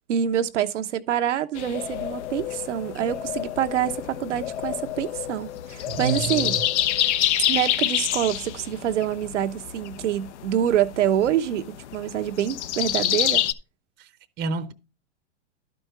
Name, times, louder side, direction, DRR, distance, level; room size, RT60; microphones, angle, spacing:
voice 1, 0.1-6.6 7.5-13.4, right 10 dB, 80° right, 1.0 m, -26 dB
sound 1, 1.5-13.5, left 12 dB, 70° left, 0.9 m, -28 dB
voice 2, 5.9-6.6 14.0-14.1 14.4-14.7, right 5 dB, 30° right, 0.8 m, -29 dB
12.0 x 5.2 x 4.7 m
hypercardioid pair, 125°, 35 cm